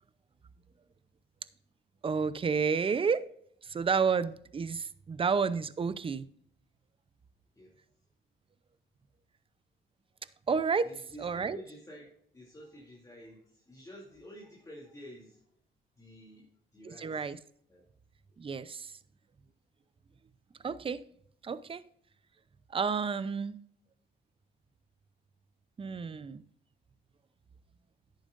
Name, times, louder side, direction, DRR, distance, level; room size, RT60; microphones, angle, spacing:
voice 1, 2.0-3.3 3.6-6.3 10.5-10.9 11.2-11.6 16.8-17.4 18.4-18.9 20.6-21.0 21.4-21.8 22.7-23.6 25.8-26.4, right 5 dB, 25° right, 0.5 m, -30 dB
voice 2, 10.8-12.1 12.3-15.6 16.0-16.5 16.7-17.3 17.7-17.8 18.3-18.4, equal, 15° left, 2.7 m, -50 dB
10.5 x 9.0 x 2.5 m
cardioid pair, 90°, 20 cm